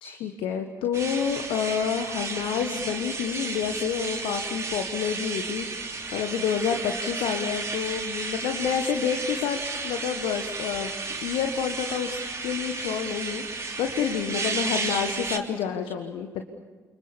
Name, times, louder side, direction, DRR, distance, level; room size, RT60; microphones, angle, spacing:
voice 1, 0.0-9.6 9.8-10.9 11.2-16.4, left 7 dB, 65° left, 6 dB, 1.6 m, -29 dB
sound 1, 0.9-15.4, right 3 dB, 30° right, 3.3 m, -33 dB
29.0 x 24.5 x 7.2 m, 1.4 s
figure-of-eight pair, 40°, 10 cm